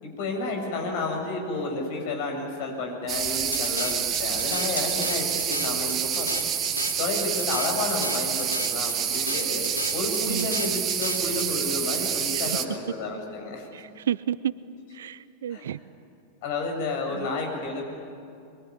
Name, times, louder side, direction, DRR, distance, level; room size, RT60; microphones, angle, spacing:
voice 1, 0.0-6.4 7.0-13.7 15.5-15.7 16.4-17.8, left 3 dB, 50° left, 2 dB, 7.1 m, -31 dB
sound 1, 3.1-12.6, right 8 dB, 30° right, 1.9 m, -28 dB
sound 2, 3.5-11.5, left 2 dB, 80° left, 1.6 m, -34 dB
voice 2, 13.7-14.5 14.9-15.8 17.1-17.3, right 10 dB, 60° right, 18 dB, 0.7 m, -31 dB
24.5 x 23.5 x 9.9 m, 2.5 s
figure-of-eight pair, 90°, 0 cm